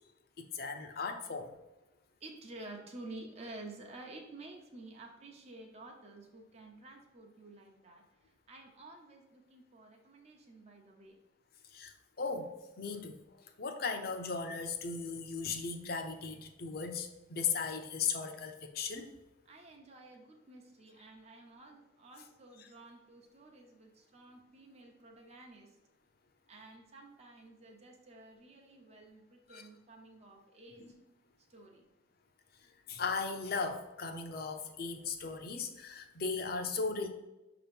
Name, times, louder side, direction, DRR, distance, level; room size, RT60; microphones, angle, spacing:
voice 1, 0.4-1.5 11.7-12.5 12.8-13.2 13.6-19.1 29.5-29.6 30.8-30.9 32.9-37.1, left 5 dB, 50° left, 5 dB, 0.7 m, -37 dB
voice 2, 2.2-8.0 8.5-11.2 19.4-25.8 26.5-30.9 31.5-31.8, right 2 dB, 35° right, 1 dB, 0.8 m, -51 dB
6.3 x 3.0 x 5.2 m, 1.0 s
head